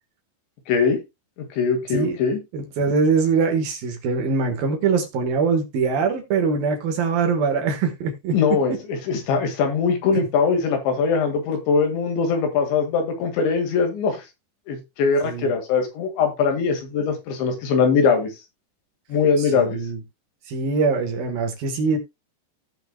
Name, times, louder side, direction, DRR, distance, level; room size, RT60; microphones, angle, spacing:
voice 1, 0.7-1.0 1.6-2.4 8.3-14.2 14.7-18.3 19.1-19.8, left 5 dB, 80° left, 4.2 m, -21 dB
voice 2, 2.5-8.4 10.1-10.3 15.2-15.5 19.4-20.0 20.5-22.0, right 4 dB, 65° right, 2.9 m, -23 dB
17.0 x 5.7 x 2.2 m
omnidirectional pair, 5.2 m